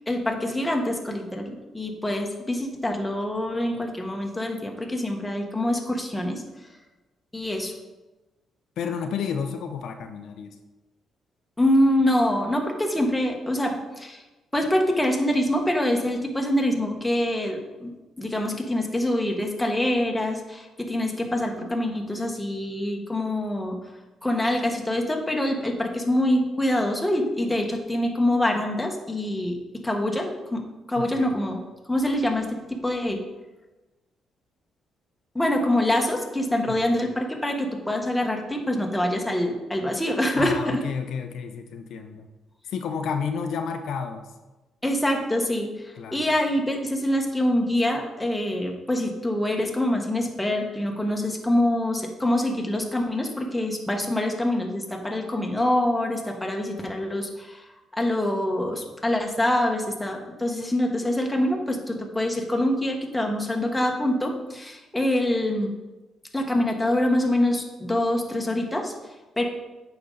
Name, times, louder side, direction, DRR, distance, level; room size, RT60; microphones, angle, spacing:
voice 1, 0.1-6.4 7.3-7.7 11.6-14.2 14.5-17.9 18.2-23.8 24.2-29.6 29.8-31.6 31.9-33.2 35.3-40.8 44.8-57.6 58.0-65.7 66.3-68.9 69.4-69.5, left 1 dB, 10° left, 2 dB, 1.2 m, -25 dB
voice 2, 8.8-10.5 31.0-31.3 36.7-36.9 40.3-42.3 42.7-44.2 46.0-46.2, left 6 dB, 75° left, 5 dB, 0.6 m, -31 dB
8.6 x 5.3 x 3.9 m, 1.1 s
cardioid pair, 90°, 0 cm